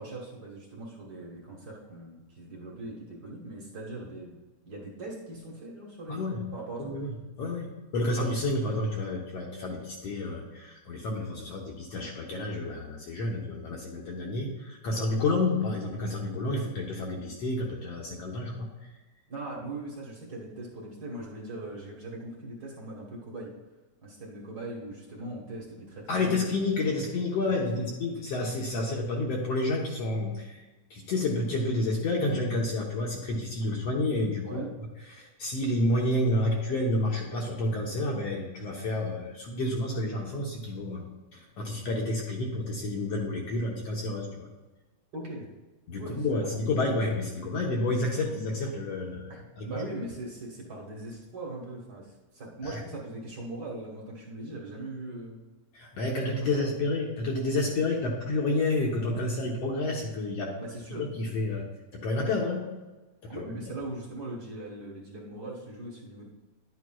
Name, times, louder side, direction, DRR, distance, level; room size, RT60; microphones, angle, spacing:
voice 1, 0.0-4.4 4.6-6.9 15.0-15.3 19.3-23.5 24.0-26.6 27.6-27.9 34.4-34.7 38.6-38.7 45.1-45.5 46.0-46.6 49.3-55.4 56.1-56.7 60.6-61.1 63.3-66.3, right 2 dB, 45° right, -2 dB, 1.3 m, -40 dB
voice 2, 6.1-6.4 6.8-7.1 7.4-18.7 26.1-30.6 30.9-34.7 35.1-44.5 45.9-49.9 52.6-52.8 55.7-60.5 61.0-61.6 61.9-62.7 63.2-63.4, left 2 dB, 65° left, -1 dB, 1.7 m, -30 dB
11.0 x 9.2 x 2.3 m, 1.2 s
omnidirectional pair, 3.7 m